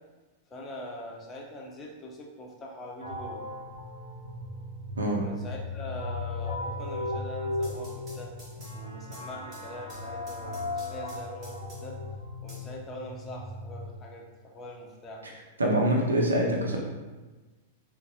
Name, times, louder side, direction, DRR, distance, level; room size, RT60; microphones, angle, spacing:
voice 1, 0.5-3.5 5.1-8.3 8.7-12.0 12.4-15.4, left 1 dB, 25° left, -1 dB, 0.6 m, -43 dB
sound 1, 3.0-13.8, left 2 dB, 90° left, 0.6 m, -37 dB
voice 2, 5.0-5.3 15.6-16.8, right 1 dB, 80° right, -1 dB, 0.6 m, -25 dB
sound 2, 7.6-12.0 12.5-13.4, right 1 dB, 30° right, 1.4 m, -52 dB
3.9 x 2.1 x 2.8 m, 1.2 s
figure-of-eight pair, 95°, 0 cm